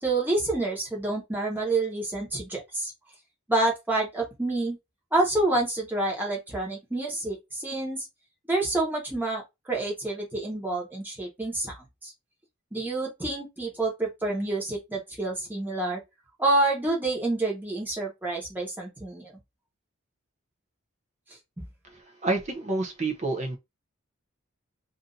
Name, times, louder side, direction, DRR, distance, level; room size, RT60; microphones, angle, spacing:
voice 1, 0.0-2.9 3.5-4.8 5.1-8.1 8.5-12.1 12.7-16.0 16.4-19.3 21.6-21.7, right 2 dB, 10° right, 1.1 m, -28 dB
voice 2, 21.9-23.6, right 2 dB, 30° right, 0.7 m, -29 dB
2.7 x 2.6 x 3.9 m
head